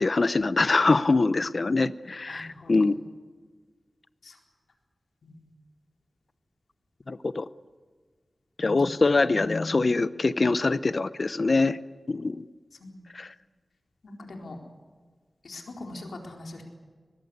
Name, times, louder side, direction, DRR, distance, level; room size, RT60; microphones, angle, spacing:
voice 1, 0.0-2.9 7.1-7.4 8.6-11.8 12.1-12.4 13.1-13.3, left 3 dB, 50° left, 14 dB, 0.7 m, -24 dB
voice 2, 2.3-2.9 4.2-4.4 5.2-5.4 12.8-13.0 14.0-14.6 15.4-16.6, left 2 dB, 85° left, 1 dB, 4.2 m, -42 dB
24.0 x 20.5 x 8.1 m, 1.5 s
wide cardioid pair, 105°, 0 cm